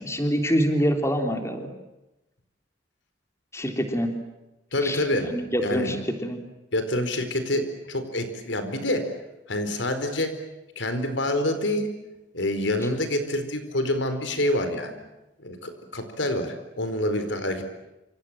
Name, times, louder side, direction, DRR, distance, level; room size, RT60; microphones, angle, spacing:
voice 1, 0.0-1.7 3.5-4.1 4.8-6.4, equal, 15° left, 5 dB, 3.3 m, -26 dB
voice 2, 4.7-5.3 5.6-5.9 6.7-9.1 9.5-10.4 10.8-11.9 12.3-15.0 15.4-17.6, left 1 dB, 85° left, 9 dB, 4.5 m, -27 dB
28.0 x 27.5 x 7.6 m, 0.97 s
head